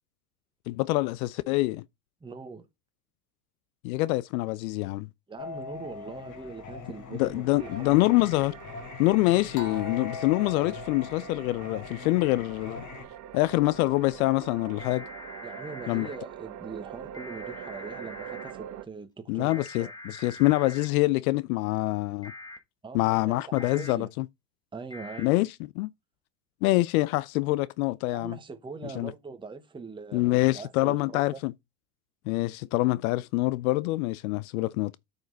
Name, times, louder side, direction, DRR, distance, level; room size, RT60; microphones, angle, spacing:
voice 1, 0.7-1.8 3.8-5.1 7.1-8.5 9.0-12.8 13.3-15.0 15.9-16.1 19.3-22.3 22.9-24.3 25.2-25.9 26.6-28.4 28.8-29.1 30.1-31.5 32.3-35.0, left 19 dB, 60° left, 0.5 m, -25 dB
voice 2, 2.2-2.6 5.3-7.7 15.4-19.9 22.8-24.1 24.7-25.3 28.1-31.4, right 4 dB, 10° right, 1.1 m, -42 dB
Singing, 5.4-13.0, left 5 dB, 35° left, 2.0 m, -41 dB
sound 1, 7.6-18.9, right 11 dB, 35° right, 1.0 m, -44 dB
sound 2, 14.8-16.2 17.1-18.5 19.5-20.9 22.2-22.6 23.6-23.9 24.9-25.3, left 2 dB, 10° left, 1.7 m, -44 dB
9.0 x 5.3 x 4.0 m
hypercardioid pair, 85°, 49 cm